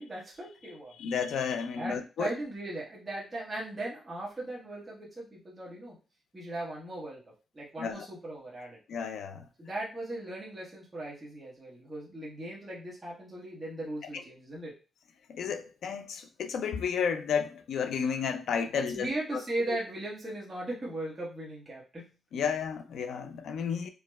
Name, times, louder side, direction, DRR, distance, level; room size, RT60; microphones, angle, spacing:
voice 1, 0.0-0.9 1.8-6.0 6.3-7.2 7.5-8.8 9.6-14.7 18.8-22.1, right 1 dB, 15° right, 1.0 m, -38 dB
voice 2, 1.0-2.3 7.8-8.1 8.9-9.4 14.1-14.2 15.3-19.8 22.3-23.9, left 6 dB, 75° left, 0.4 m, -32 dB
4.6 x 2.0 x 2.3 m
wide cardioid pair, 175°, 0 cm